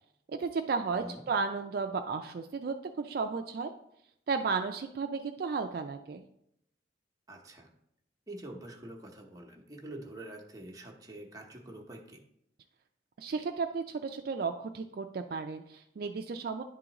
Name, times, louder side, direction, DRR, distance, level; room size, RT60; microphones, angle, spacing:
voice 1, 0.3-3.7 4.3-6.3 13.2-16.6, right 4 dB, 55° right, 5 dB, 0.3 m, -34 dB
voice 2, 0.9-1.2 7.3-7.7 8.3-12.2, right 1 dB, 20° right, 1 dB, 0.8 m, -46 dB
10.5 x 3.7 x 2.9 m, 0.76 s
head